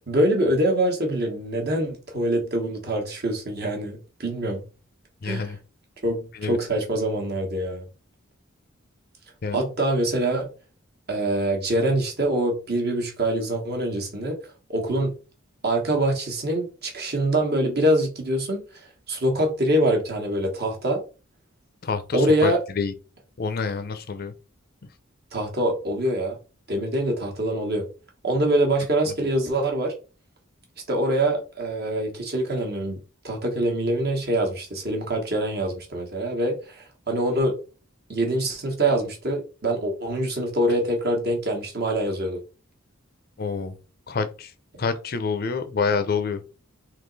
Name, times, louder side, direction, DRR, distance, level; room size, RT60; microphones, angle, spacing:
voice 1, 0.1-4.6 5.2-5.5 6.0-7.8 9.5-10.5 11.1-14.4 14.7-15.2 15.6-18.6 19.1-21.0 22.1-22.6 25.3-26.4 26.7-27.9 28.2-29.9 30.9-33.0 33.2-37.5 38.1-42.4, right 1 dB, 50° right, 1.2 m, -24 dB
voice 2, 5.2-5.6 6.3-6.6 9.4-9.6 21.8-22.9 23.4-24.3 29.1-29.2 43.4-43.7 44.1-44.5 44.8-46.4, left 5 dB, 45° left, 0.5 m, -27 dB
3.7 x 2.9 x 3.9 m
head